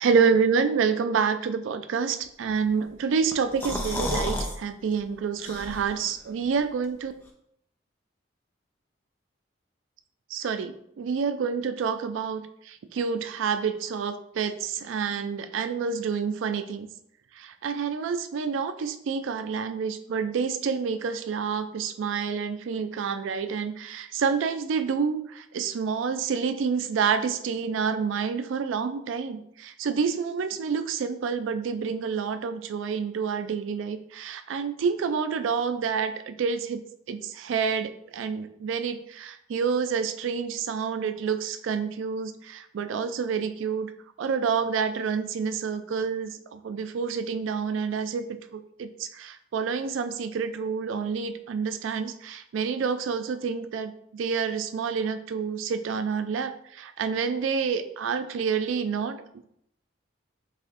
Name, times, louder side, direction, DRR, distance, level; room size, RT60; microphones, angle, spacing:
voice 1, 0.0-7.1 10.3-16.9 17.4-36.8 37.1-43.9 44.2-48.2 48.5-59.4, right 6 dB, 85° right, 10 dB, 0.3 m, -28 dB
sound 1, 3.3-4.6 4.9-5.0 5.4-6.1, left 1 dB, 10° left, 0.5 m, -31 dB
7.3 x 2.6 x 2.5 m, 0.73 s
head